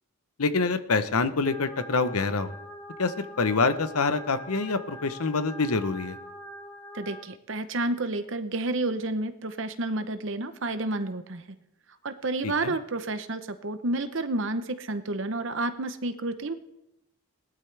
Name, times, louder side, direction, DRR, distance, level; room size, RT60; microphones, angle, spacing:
voice 1, 0.4-2.5 3.0-6.2 12.4-12.7, left 4 dB, 85° left, 11 dB, 0.9 m, -26 dB
sound 1, 1.4-7.2, equal, 5° left, 1.2 m, -43 dB
voice 2, 6.9-11.4 12.0-16.5, right 2 dB, 60° right, 11 dB, 0.9 m, -30 dB
19.0 x 12.5 x 3.4 m, 0.87 s
head